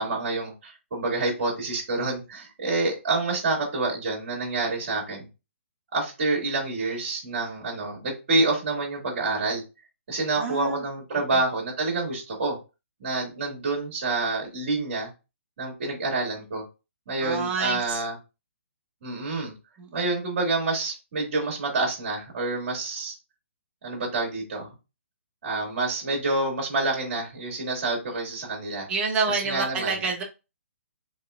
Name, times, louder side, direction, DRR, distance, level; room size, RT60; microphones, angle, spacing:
voice 1, 0.0-5.3 5.9-9.6 10.1-12.6 13.0-15.1 15.6-16.6 17.1-18.1 19.0-19.5 19.9-23.1 23.8-24.7 25.4-28.9 29.4-29.9, right 3 dB, 45° right, -3 dB, 1.9 m, -27 dB
voice 2, 10.3-10.8 11.3-11.4 17.2-18.0 19.8-20.0 28.9-30.2, right 4 dB, 10° right, -2 dB, 0.8 m, -28 dB
3.9 x 3.5 x 2.2 m, 0.28 s
hypercardioid pair, 165°, 7 cm